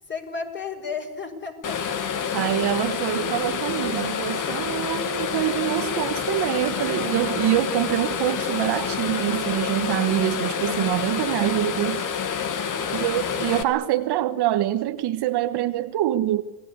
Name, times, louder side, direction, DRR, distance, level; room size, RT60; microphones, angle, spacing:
voice 1, 0.1-1.8 2.1-2.3 12.6-13.0, left 5 dB, 20° left, 5.4 m, -34 dB
sound 1, 1.6-13.6, left 7 dB, 40° left, 2.3 m, -28 dB
voice 2, 2.3-12.1 12.9-16.4, right 13 dB, 50° right, 1.5 m, -25 dB
27.5 x 19.5 x 8.5 m
supercardioid pair, 105°, 49 cm